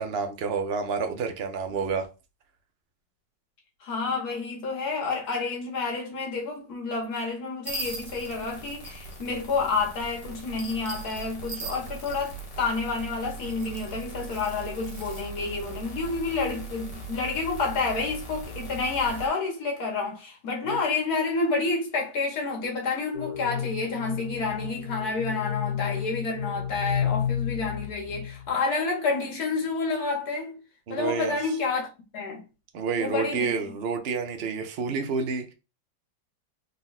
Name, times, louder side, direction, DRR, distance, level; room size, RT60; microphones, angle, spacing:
voice 1, 0.0-2.1 20.7-20.8 30.9-31.4 32.7-35.5, right 5 dB, 80° right, 0.5 m, -29 dB
voice 2, 3.8-30.6 30.9-32.4 33.0-33.8, left 4 dB, 60° left, 1.8 m, -29 dB
sound 1, 7.6-9.2 10.5-12.6 13.4-15.2, right 2 dB, 40° right, 0.7 m, -40 dB
sound 2, 7.7-19.3, right 3 dB, 85° left, 2.1 m, -40 dB
sound 3, 23.1-28.5, left 8 dB, 45° left, 0.8 m, -31 dB
4.0 x 2.4 x 4.0 m
omnidirectional pair, 1.9 m